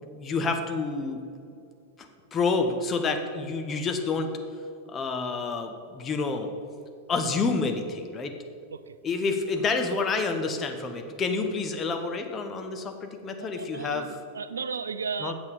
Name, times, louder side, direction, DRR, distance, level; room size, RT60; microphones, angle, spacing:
voice 1, 0.0-1.2 2.3-4.3 4.9-6.5 7.1-8.3 9.0-14.1 15.2-15.3, left 4 dB, 25° left, 5 dB, 0.9 m, -28 dB
voice 2, 13.4-15.3, right 5 dB, 70° right, 14 dB, 0.3 m, -35 dB
8.2 x 7.1 x 5.1 m, 2.5 s
figure-of-eight pair, 90°, 0 cm